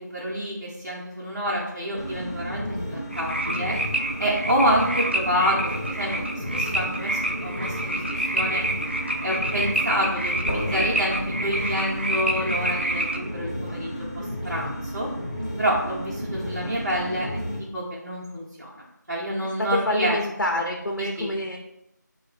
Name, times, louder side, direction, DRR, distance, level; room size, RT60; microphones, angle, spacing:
voice 1, 0.0-3.8 4.2-8.7 9.2-15.1 15.6-20.2 20.5-20.6 21.0-21.3, equal, 55° right, -6 dB, 0.8 m, -28 dB
sound 1, 2.0-17.6, equal, 20° left, 0.6 m, -33 dB
sound 2, 3.1-13.2, right 1 dB, 35° right, 0.3 m, -28 dB
sound 3, 10.5-13.1, equal, 50° left, 0.7 m, -36 dB
voice 2, 19.6-21.6, left 1 dB, 85° left, 2 dB, 0.5 m, -26 dB
3.3 x 2.1 x 4.1 m, 0.84 s
figure-of-eight pair, 175°, 10 cm